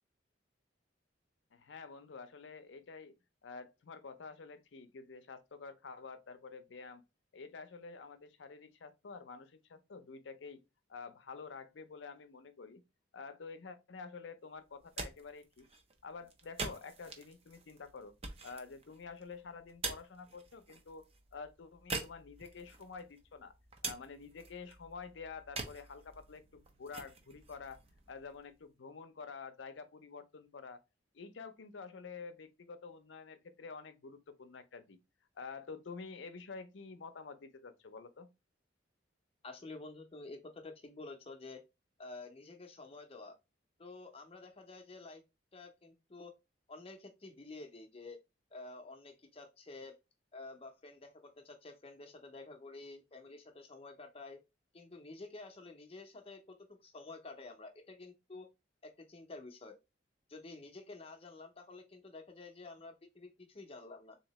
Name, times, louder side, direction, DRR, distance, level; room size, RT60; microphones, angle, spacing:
voice 1, 1.5-3.2 3.4-7.0 7.3-10.6 10.9-12.8 13.1-15.7 16.0-18.1 18.4-21.0 21.3-23.5 23.8-27.8 28.1-30.8 31.1-35.0 35.4-38.3, left 4 dB, 75° left, 0.5 m, -49 dB
sound 1, 14.7-28.6, right 3 dB, 30° right, 0.6 m, -46 dB
voice 2, 39.4-41.6 42.0-43.4 43.8-45.2 45.5-46.3 46.7-48.2 48.5-49.9 50.3-54.4 54.7-58.5 58.8-59.8 60.3-64.2, left 3 dB, 30° left, 0.6 m, -50 dB
3.7 x 2.8 x 3.0 m
head